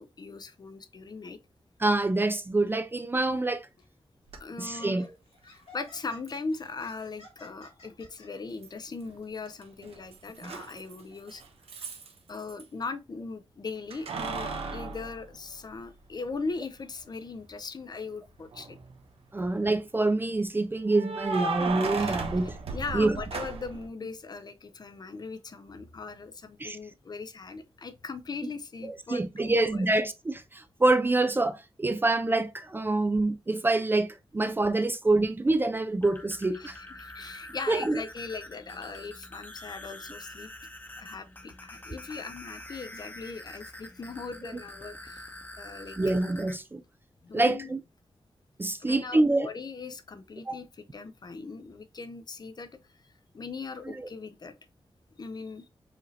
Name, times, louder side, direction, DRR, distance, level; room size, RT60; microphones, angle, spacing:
voice 1, 0.0-1.4 4.4-5.0 5.5-11.4 12.3-18.8 22.0-22.2 22.7-29.9 36.6-36.7 37.0-40.5 40.9-45.3 45.6-46.0 47.2-47.8 48.8-52.9 53.3-54.5 55.2-55.7, left 4 dB, 45° left, 0.5 m, -39 dB
voice 2, 1.8-3.7 4.6-5.1 10.4-10.5 19.3-22.6 22.9-23.2 26.6-26.8 29.1-36.8 37.7-38.0 46.0-46.8 47.3-47.8 48.6-49.5 50.5-50.6, right 2 dB, 20° right, 0.3 m, -26 dB
Laughter, 3.8-4.0 4.6-8.3, left 2 dB, 85° left, 2.1 m, -54 dB
Keys jangling, 4.3-4.4 6.3-6.4 8.6-9.2 9.5-12.6 13.9-16.0 16.5-16.6 18.4-18.9 20.9-23.9, right 4 dB, 85° right, 0.8 m, -35 dB
sound 1, 35.9-46.5, left 1 dB, 20° left, 0.9 m, -46 dB
4.8 x 2.7 x 3.1 m
wide cardioid pair, 115°, 10 cm